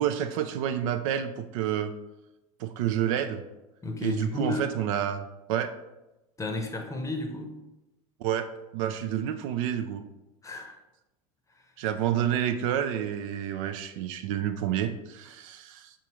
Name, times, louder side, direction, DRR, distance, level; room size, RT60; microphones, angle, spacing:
voice 1, 0.0-1.9 2.6-3.4 4.0-5.7 8.2-8.5 8.7-10.0 11.8-15.9, right 10 dB, 65° right, 9 dB, 0.4 m, -29 dB
voice 2, 3.8-4.7 6.4-7.6 10.4-10.8 11.5-11.7, left 2 dB, 15° left, 4 dB, 0.7 m, -33 dB
4.9 x 3.4 x 3.0 m, 0.97 s
hypercardioid pair, 90°, 19 cm